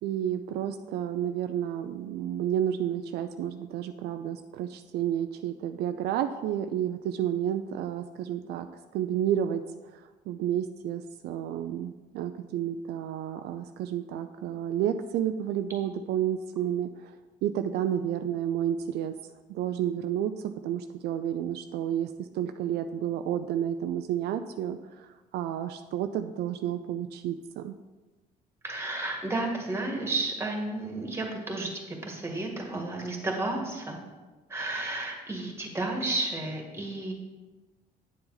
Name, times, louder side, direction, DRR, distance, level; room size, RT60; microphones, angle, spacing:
voice 1, 0.0-8.7 8.9-9.6 9.9-17.1 17.4-19.1 19.5-27.7, right 10 dB, 75° right, 8 dB, 0.4 m, -31 dB
voice 2, 28.6-34.0 34.5-37.1, right 2 dB, 15° right, 1 dB, 1.7 m, -32 dB
8.5 x 7.0 x 3.9 m, 1.2 s
cardioid pair, 110°, 17 cm